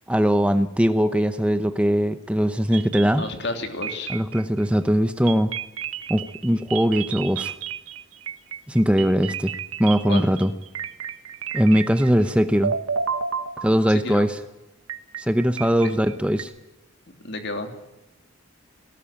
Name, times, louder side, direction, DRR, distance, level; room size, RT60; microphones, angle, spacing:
voice 1, 0.1-3.3 4.1-5.5 6.1-7.5 8.7-9.5 9.8-10.5 11.5-12.7 13.6-14.4 15.2-16.5, equal, 5° right, 10 dB, 0.7 m, -20 dB
sound 1, 2.7-3.5 3.8-4.6 5.3-12.3 12.6-14.1 14.9-16.4, right 7 dB, 85° right, 1.4 m, -31 dB
voice 2, 3.2-4.1 10.1-10.3 13.9-14.3 15.8-15.9 17.2-17.7, left 2 dB, 55° left, 6 dB, 3.0 m, -31 dB
18.5 x 18.0 x 8.7 m, 0.98 s
head